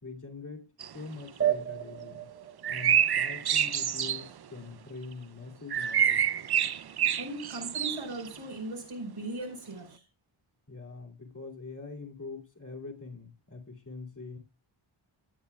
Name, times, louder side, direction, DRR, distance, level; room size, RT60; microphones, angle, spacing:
voice 1, 0.0-2.3 2.7-6.2 10.7-14.4, left 4 dB, 40° left, -1 dB, 2.7 m, -44 dB
sound 1, 0.8-0.9 1.3-1.4 2.6-4.3 5.7-8.4, right 9 dB, 50° right, 0.5 m, -27 dB
sound 2, 1.4-4.4, right 11 dB, 25° right, 0.9 m, -34 dB
voice 2, 7.2-10.0, right 2 dB, 85° right, 1 dB, 4.7 m, -38 dB
16.5 x 8.7 x 2.3 m, 0.30 s
wide cardioid pair, 65°, 48 cm